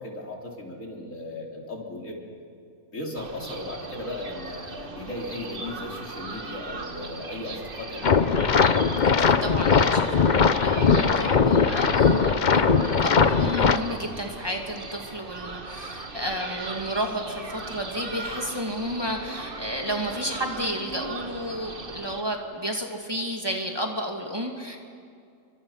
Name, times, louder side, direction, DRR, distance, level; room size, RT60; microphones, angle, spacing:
voice 1, 0.0-2.2 2.9-8.2, left 2 dB, 75° left, -1 dB, 4.0 m, -36 dB
sound 1, 3.1-22.2, right 3 dB, 45° right, 1.5 m, -38 dB
sound 2, 8.0-13.8, left 5 dB, 40° left, 0.8 m, -20 dB
voice 2, 9.0-24.8, equal, 20° right, 1 dB, 2.4 m, -32 dB
29.0 x 24.5 x 5.8 m, 2.4 s
omnidirectional pair, 1.4 m